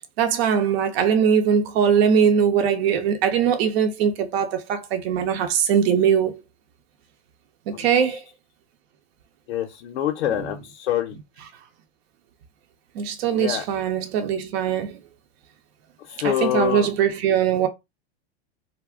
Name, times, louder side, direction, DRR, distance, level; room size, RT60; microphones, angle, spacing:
voice 1, 0.2-6.4 7.7-8.2 10.4-10.5 13.0-15.0 16.2-17.7, right 7 dB, 65° right, 0.7 m, -21 dB
voice 2, 9.5-11.1 13.3-13.6 16.1-16.9, left 11 dB, 80° left, 0.7 m, -26 dB
2.3 x 2.1 x 3.5 m
hypercardioid pair, 110°, 33 cm